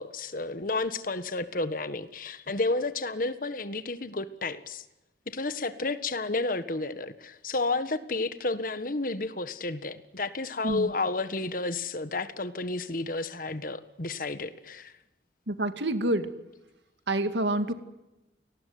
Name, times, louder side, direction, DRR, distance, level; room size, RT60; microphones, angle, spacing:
voice 1, 0.0-4.8 5.3-14.9, left 3 dB, 50° left, 12 dB, 1.6 m, -31 dB
voice 2, 15.5-16.4 17.1-17.7, right 1 dB, 85° right, 9 dB, 2.4 m, -27 dB
29.0 x 19.0 x 9.5 m, 0.98 s
head